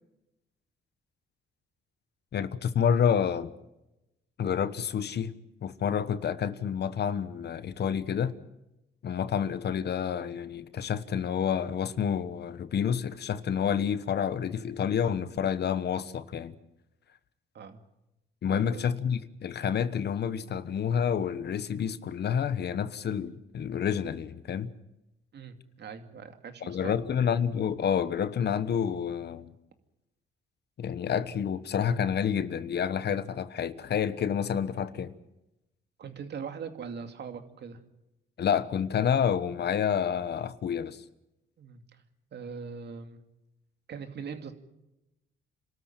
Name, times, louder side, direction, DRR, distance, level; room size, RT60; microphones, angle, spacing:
voice 1, 2.3-3.5 4.4-5.3 5.6-8.3 9.0-16.5 18.4-24.7 26.6-29.5 30.8-35.1 38.4-41.0, left 8 dB, 55° left, 1.2 m, -29 dB
voice 2, 18.5-18.9 25.3-27.0 36.0-37.8 41.6-41.8 42.3-43.2 43.9-44.5, right 6 dB, 60° right, 2.5 m, -41 dB
28.0 x 13.5 x 9.0 m
cardioid pair, 90°, 20 cm